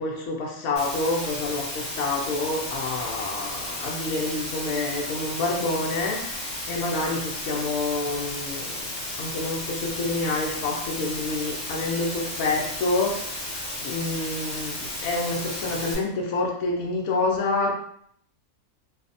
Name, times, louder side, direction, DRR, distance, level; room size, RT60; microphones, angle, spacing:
voice 1, 0.0-8.8 9.2-13.5 13.8-17.7, left 2 dB, 80° left, -1 dB, 1.1 m, -28 dB
Water, 0.8-16.0, left 1 dB, 40° left, 1.3 m, -33 dB
3.2 x 2.0 x 2.6 m, 0.67 s
omnidirectional pair, 1.4 m